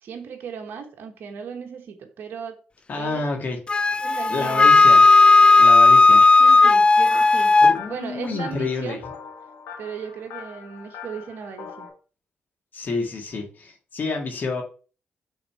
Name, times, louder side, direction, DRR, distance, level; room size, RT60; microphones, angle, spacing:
voice 1, 0.0-2.6 2.9-3.5 4.0-4.7 6.4-7.5 7.9-9.0 9.8-11.9, right 6 dB, 70° right, 3 dB, 1.2 m, -36 dB
voice 2, 2.9-3.6 4.3-5.0 5.6-6.2 7.6-9.0 12.7-14.6, left 3 dB, 55° left, 2 dB, 1.8 m, -29 dB
Wind instrument woodwind instrument, 3.7-7.8, left 3 dB, 30° left, 0.3 m, -14 dB
sound 1, 7.1-11.9, left 7 dB, 90° left, 1.2 m, -42 dB
5.8 x 3.9 x 4.6 m, 0.37 s
supercardioid pair, 55°, 4 cm